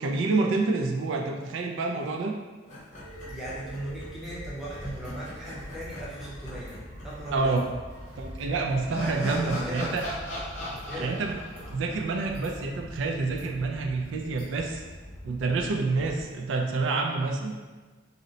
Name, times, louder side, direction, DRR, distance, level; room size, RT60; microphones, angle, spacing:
voice 1, 0.0-2.3 7.3-7.7 8.2-10.1 11.0-11.4 11.7-14.8 15.2-17.6, right 3 dB, 75° right, 2 dB, 0.3 m, -28 dB
sound 1, 2.7-4.0 4.3-4.4 4.8-7.0 7.3-7.4 8.4-12.7, equal, 40° left, 0.7 m, -38 dB
sound 2, 2.9-16.3, equal, 50° right, 1.3 m, -44 dB
voice 2, 3.3-6.8 7.0-7.5 9.3-9.9 10.6-11.1, right 1 dB, ahead, -8 dB, 0.6 m, -38 dB
2.7 x 2.0 x 3.8 m, 1.3 s
head